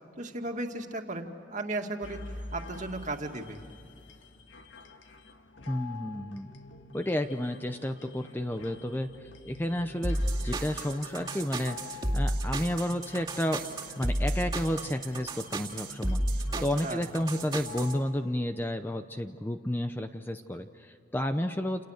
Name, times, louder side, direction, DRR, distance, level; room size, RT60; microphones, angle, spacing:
voice 1, 0.2-2.2 2.5-3.6 16.6-17.0, right 2 dB, 40° right, 3 dB, 2.2 m, -35 dB
sound 1, 2.0-18.0, left 3 dB, 70° left, 1.8 m, -47 dB
voice 2, 5.7-6.5 6.9-13.6 14.0-21.8, left 1 dB, 10° left, 7 dB, 0.7 m, -32 dB
sound 2, 10.0-17.9, right 1 dB, 20° right, 2.3 m, -32 dB
29.5 x 29.0 x 6.6 m, 2.6 s
head